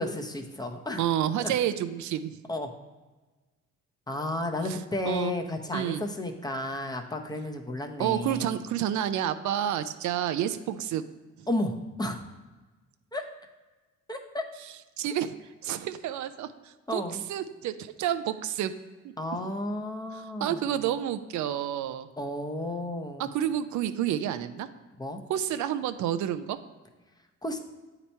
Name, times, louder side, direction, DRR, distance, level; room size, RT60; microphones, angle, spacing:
voice 1, 0.0-1.0 1.4-1.5 2.5-2.7 4.1-8.5 11.5-12.2 13.1-13.2 14.1-14.4 16.9-17.2 19.2-20.7 22.2-23.3 25.0-25.2 27.4-27.6, left 1 dB, 15° left, 4 dB, 0.7 m, -32 dB
voice 2, 1.0-2.4 4.7-4.8 5.1-5.3 5.7-6.0 8.0-11.0 15.0-15.3 15.6-17.0 17.3-18.7 20.4-22.1 23.2-24.7 25.3-26.6, right 11 dB, 75° right, 11 dB, 0.4 m, -29 dB
8.1 x 2.9 x 4.4 m, 1.2 s
cardioid pair, 90°, 30 cm